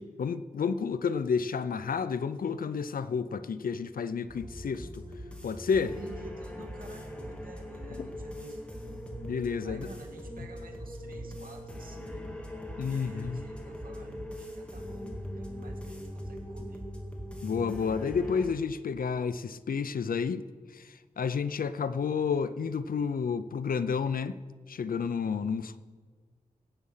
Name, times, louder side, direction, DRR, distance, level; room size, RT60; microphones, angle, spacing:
voice 1, 0.0-5.0 5.4-5.9 8.0-8.1 9.2-9.9 12.8-13.4 17.4-20.4 20.7-24.4 24.7-25.8, left 6 dB, 80° left, 13 dB, 0.6 m, -30 dB
sound 1, 4.3-18.5, equal, 10° left, 1.9 m, -41 dB
voice 2, 5.8-8.7 9.6-16.9 25.2-25.6, right 2 dB, 80° right, 2 dB, 1.9 m, -50 dB
16.5 x 8.3 x 5.7 m, 1.5 s
wide cardioid pair, 110°, 15 cm